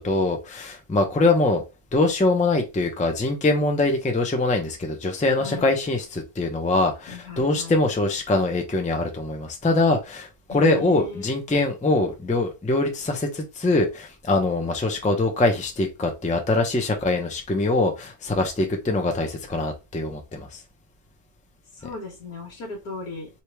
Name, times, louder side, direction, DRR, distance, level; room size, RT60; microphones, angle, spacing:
voice 1, 0.0-1.6 1.9-20.6, left 2 dB, 10° left, 4 dB, 0.4 m, -23 dB
voice 2, 5.3-5.7 7.1-7.7 10.5-11.3 21.7-23.3, left 4 dB, 85° left, -3 dB, 1.7 m, -37 dB
3.4 x 2.9 x 4.5 m, 0.26 s
omnidirectional pair, 1.6 m